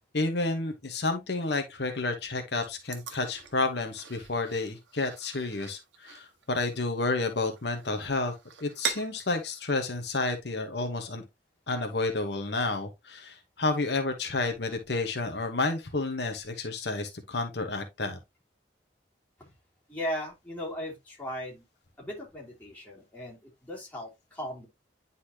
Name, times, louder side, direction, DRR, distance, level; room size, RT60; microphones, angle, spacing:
voice 1, 0.1-8.3 8.6-11.2 11.7-18.2, left 3 dB, 65° left, 1.1 m, -30 dB
sound 1, 2.6-9.7, right 7 dB, 85° right, 1.3 m, -42 dB
voice 2, 19.9-21.6 22.0-24.7, equal, 10° left, 3.0 m, -37 dB
9.9 x 4.2 x 2.8 m
head